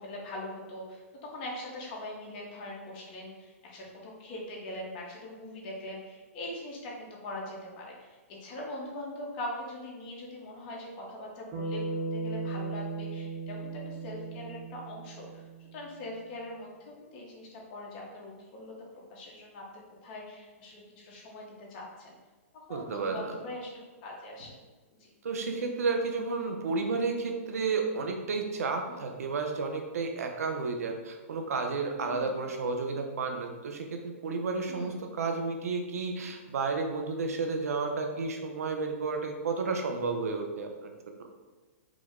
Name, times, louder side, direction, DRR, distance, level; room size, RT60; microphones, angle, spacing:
voice 1, 0.0-15.4 15.7-18.7 19.1-19.6 20.0-22.1 22.7-23.7 24.0-24.6 25.0-25.1 25.5-25.6 28.9-29.1 32.0-32.4 34.7-35.0, left 1 dB, 35° left, -2 dB, 1.0 m, -42 dB
Bass guitar, 11.5-15.9, right 3 dB, 30° right, 0.8 m, -37 dB
voice 2, 22.7-23.4 25.2-41.3, right 4 dB, 80° right, 4 dB, 0.7 m, -32 dB
5.0 x 2.2 x 3.6 m, 1.3 s
hypercardioid pair, 155°, 8 cm